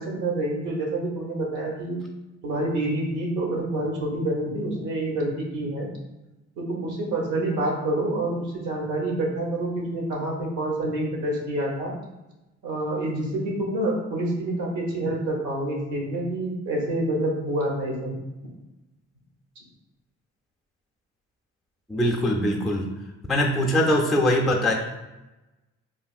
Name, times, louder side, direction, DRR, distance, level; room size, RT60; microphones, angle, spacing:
voice 1, 0.0-2.0 2.4-5.9 6.6-12.0 12.6-18.2, right 1 dB, 85° right, -1 dB, 0.9 m, -27 dB
voice 2, 21.9-23.0 23.3-24.7, left 1 dB, ahead, -1 dB, 0.4 m, -22 dB
3.2 x 2.5 x 2.3 m, 1.0 s
cardioid pair, 90°, 30 cm